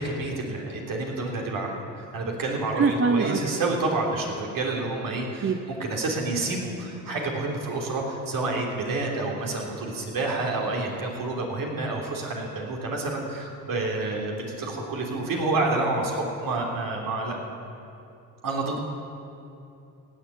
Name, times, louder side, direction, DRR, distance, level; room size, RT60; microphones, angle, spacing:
voice 1, 0.0-17.4 18.4-18.8, right 2 dB, 60° right, 0 dB, 3.4 m, -29 dB
voice 2, 2.8-3.4 5.4-5.6, right 5 dB, 30° right, 7 dB, 0.8 m, -23 dB
17.0 x 7.5 x 9.5 m, 2.7 s
supercardioid pair, 65°, 38 cm